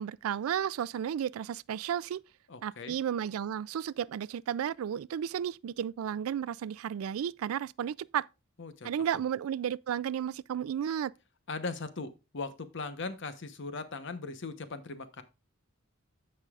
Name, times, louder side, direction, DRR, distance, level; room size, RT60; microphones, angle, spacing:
voice 1, 0.0-2.2 2.6-8.3 8.8-11.1, right 9 dB, 85° right, 0.3 m, -33 dB
voice 2, 2.5-3.0 8.6-8.9 11.5-15.2, left 3 dB, 60° left, 1.0 m, -39 dB
14.5 x 5.4 x 2.4 m
head